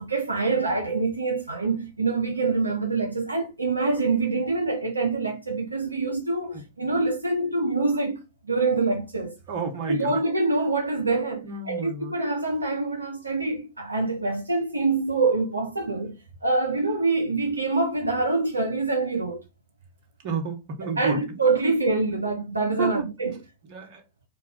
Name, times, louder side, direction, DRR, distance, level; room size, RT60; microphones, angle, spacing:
voice 1, 0.0-9.4 9.9-16.2 16.4-19.4 20.8-23.4, right 3 dB, 85° right, 0.4 m, -25 dB
voice 2, 9.5-10.2 11.4-12.1 20.2-21.8 22.8-23.1 23.6-24.0, right 4 dB, 45° right, 0.8 m, -31 dB
2.2 x 2.2 x 3.5 m
figure-of-eight pair, 95°, 0 cm